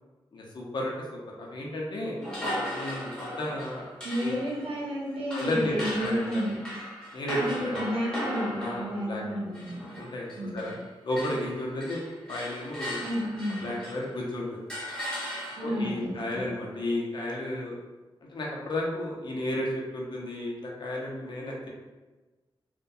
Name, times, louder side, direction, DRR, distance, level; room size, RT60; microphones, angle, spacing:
voice 1, 0.3-0.9 1.4-2.2 2.7-3.9 4.2-4.4 5.3-6.4 7.1-7.7 8.6-9.4 10.0-10.7 11.0-12.0 12.3-13.0 13.6-14.6 15.6-17.7 18.3-21.7, left 1 dB, 55° left, -3 dB, 0.5 m, -33 dB
sound 1, 2.2-10.8 11.1-14.2 14.7-15.9, equal, 10° left, 0.8 m, -37 dB
voice 2, 4.0-6.6 7.4-9.8 10.3-10.6 13.0-13.7 15.6-16.5, equal, 90° right, -6 dB, 0.7 m, -31 dB
2.6 x 2.1 x 2.3 m, 1.2 s
wide cardioid pair, 130°, 9 cm